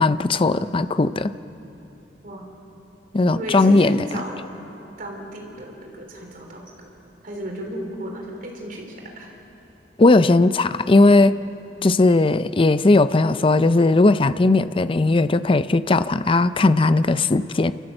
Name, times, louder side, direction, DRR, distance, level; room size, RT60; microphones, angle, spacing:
voice 1, 0.0-1.3 3.1-4.0 10.0-11.4 11.8-17.7, left 2 dB, 30° left, 13 dB, 0.5 m, -17 dB
voice 2, 3.3-4.5 5.0-6.9 7.2-9.3, right 1 dB, 50° right, 1 dB, 3.8 m, -34 dB
29.0 x 13.5 x 7.8 m, 3.0 s
head